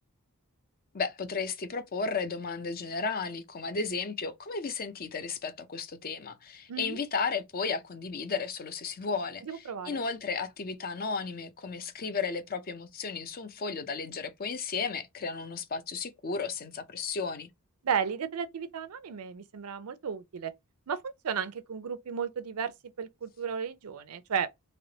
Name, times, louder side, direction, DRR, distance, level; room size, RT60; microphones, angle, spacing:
voice 1, 0.9-17.5, left 4 dB, 40° left, 0.5 m, -34 dB
voice 2, 6.7-7.0 9.4-10.0 17.8-20.5 20.9-22.7 23.0-24.5, right 7 dB, 80° right, 0.5 m, -34 dB
3.3 x 2.9 x 2.8 m
head